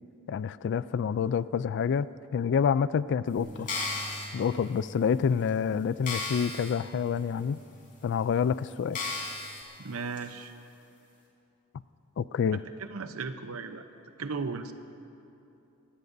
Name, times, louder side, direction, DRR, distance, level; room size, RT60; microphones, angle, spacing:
voice 1, 0.3-2.1 2.3-3.7 4.3-7.6 8.0-9.0 12.2-12.6, left 7 dB, 55° left, 17 dB, 0.3 m, -27 dB
Bass guitar, 3.4-9.6, right 2 dB, 15° right, 1.0 m, -49 dB
sound 1, 3.5-4.2 4.9-5.0 5.5-5.6 6.0-6.7 7.2-7.3 8.0-8.1 8.9-9.6 10.2-10.3, left 3 dB, 40° left, 3.7 m, -34 dB
voice 2, 9.8-10.5 12.8-13.8 14.2-14.7, right 4 dB, 70° right, 9 dB, 0.8 m, -36 dB
24.0 x 18.0 x 2.7 m, 2.7 s
head